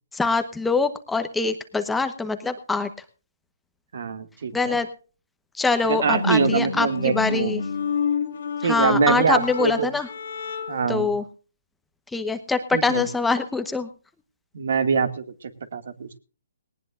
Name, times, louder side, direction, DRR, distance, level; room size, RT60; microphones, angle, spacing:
voice 1, 0.1-2.9 4.5-4.9 5.5-7.6 8.6-10.1 10.9-11.2 12.1-13.9, left 4 dB, 5° left, 8 dB, 1.1 m, -24 dB
voice 2, 3.9-4.8 5.9-7.5 8.6-9.9 10.7-11.1 12.7-13.0 14.5-16.2, right 6 dB, 65° right, 10 dB, 2.1 m, -24 dB
sound 1, 5.9-11.0, left 6 dB, 65° left, 2.4 m, -29 dB
19.0 x 18.5 x 2.5 m, 0.36 s
hypercardioid pair, 150°, 0 cm